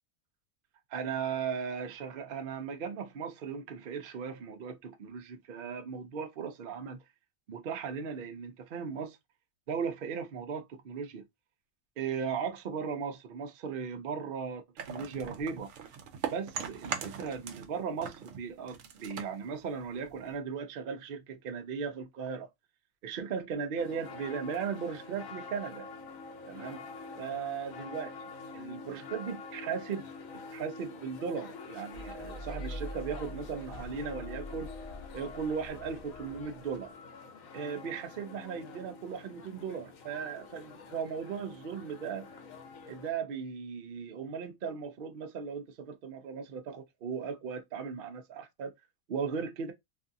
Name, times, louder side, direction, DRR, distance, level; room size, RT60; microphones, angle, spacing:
voice 1, 0.9-7.0 7.5-9.2 9.7-11.2 12.0-15.7 16.3-22.5 23.0-25.9 26.5-26.8 27.2-28.1 28.5-30.1 30.5-34.7 35.1-36.9 37.5-42.3 42.9-48.7 49.1-49.7, right 6 dB, 55° right, 0.7 m, -37 dB
sound 1, 14.8-17.7 18.0-20.4, right 7 dB, 75° right, 1.0 m, -40 dB
sound 2, 23.8-43.1, left 4 dB, 85° left, 1.1 m, -47 dB
sound 3, 31.9-36.9, left 1 dB, 50° left, 0.6 m, -44 dB
2.6 x 2.4 x 2.5 m
omnidirectional pair, 1.4 m